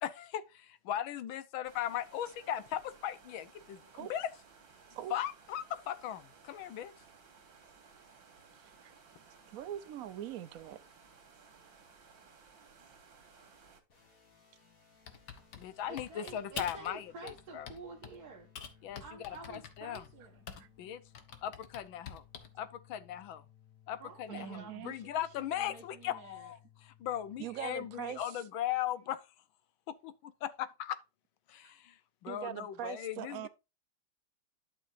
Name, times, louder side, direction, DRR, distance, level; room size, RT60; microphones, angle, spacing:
voice 1, 0.0-4.3 5.1-6.9 15.5-17.7 18.8-19.4 19.8-20.0 20.8-21.0 21.4-22.2 22.6-23.4 23.9-26.4 27.0-29.2 30.0-31.0 31.5-33.5, left 11 dB, 75° left, 1.5 m, -38 dB
sound 1, 1.6-13.8, right 5 dB, 65° right, 2.6 m, -59 dB
voice 2, 9.5-10.8 20.6-20.7 24.3-24.9 27.4-28.3 32.3-33.5, right 11 dB, 80° right, 0.7 m, -42 dB
sound 2, 13.9-28.2, left 9 dB, 40° left, 2.5 m, -63 dB
Typing, 15.1-16.9 17.3-18.2 18.5-20.8 21.1-22.6, left 7 dB, 60° left, 1.7 m, -46 dB
voice 3, 15.9-20.4 24.0-26.5, right 4 dB, 50° right, 1.8 m, -50 dB
11.5 x 6.2 x 2.5 m
omnidirectional pair, 2.2 m